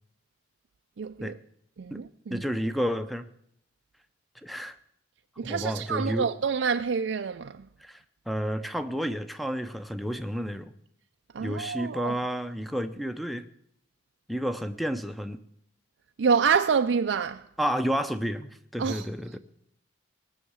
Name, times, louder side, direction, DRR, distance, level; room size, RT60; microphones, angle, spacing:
voice 1, 1.0-1.4 1.8-2.5 5.4-7.7 11.3-12.1 16.2-17.5 18.8-19.1, right 6 dB, 75° right, 0.4 m, -27 dB
voice 2, 2.3-3.3 4.4-4.8 5.4-6.3 7.8-10.7 11.4-13.4 14.3-15.4 17.6-19.4, equal, ahead, 0.6 m, -31 dB
19.0 x 6.5 x 8.0 m
head